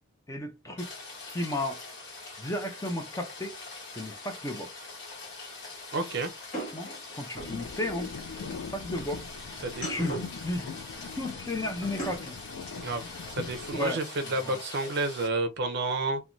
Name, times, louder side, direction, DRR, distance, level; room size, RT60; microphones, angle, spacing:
voice 1, 0.3-0.9 1.3-1.8 2.4-3.5 3.9-4.8 6.7-6.9 7.1-8.1 8.4-9.3 9.9-10.7 11.2-12.4 13.7-14.6, left 1 dB, 15° left, 0.5 m, -34 dB
Rain, 0.8-15.3, left 3 dB, 60° left, 1.0 m, -44 dB
voice 2, 5.9-6.3 9.6-10.1 12.8-16.2, right 2 dB, 55° right, 0.5 m, -31 dB
sound 1, 6.5-7.6 9.6-10.4 11.8-12.4, right 2 dB, 40° left, 1.2 m, -38 dB
sound 2, 7.3-13.8, left 5 dB, 75° left, 0.3 m, -41 dB
2.5 x 2.2 x 2.9 m
head